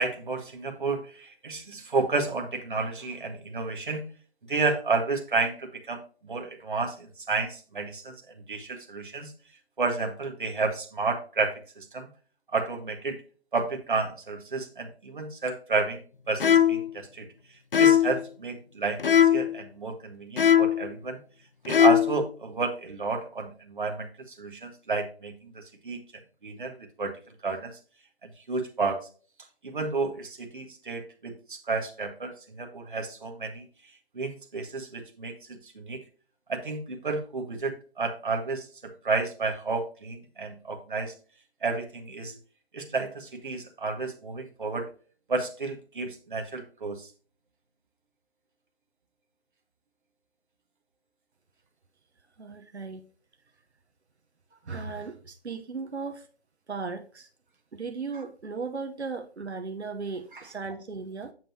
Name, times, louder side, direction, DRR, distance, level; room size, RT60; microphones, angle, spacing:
voice 1, 0.0-4.1 4.5-9.3 9.8-12.1 12.5-13.2 13.5-16.0 16.3-17.3 17.8-21.2 21.6-26.0 26.4-27.1 27.4-27.8 28.2-29.0 29.6-33.6 34.1-36.0 36.5-41.1 41.6-42.3 42.7-44.9 45.3-47.1 58.1-58.2 60.3-60.4, right 4 dB, 50° right, 1.4 m, -31 dB
sound 1, 16.4-16.9 17.7-18.2 19.0-19.5 20.4-20.9 21.7-22.2, left 9 dB, 60° left, 0.5 m, -20 dB
voice 2, 52.4-53.0 54.5-56.3 56.7-57.3 57.7-61.3, right 4 dB, 85° right, 0.9 m, -36 dB
7.6 x 6.5 x 2.8 m
figure-of-eight pair, 165°, 32 cm